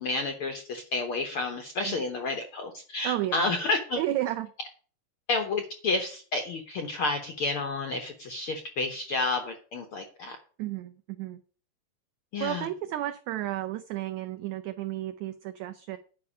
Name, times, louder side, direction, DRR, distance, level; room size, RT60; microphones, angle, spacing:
voice 1, 0.0-4.0 5.3-10.4 12.3-12.7, left 3 dB, 65° left, 6 dB, 1.3 m, -30 dB
voice 2, 3.0-3.6 4.0-4.5 10.6-11.4 12.4-16.0, right 13 dB, 85° right, 9 dB, 1.6 m, -32 dB
10.5 x 5.4 x 8.5 m, 0.41 s
omnidirectional pair, 4.0 m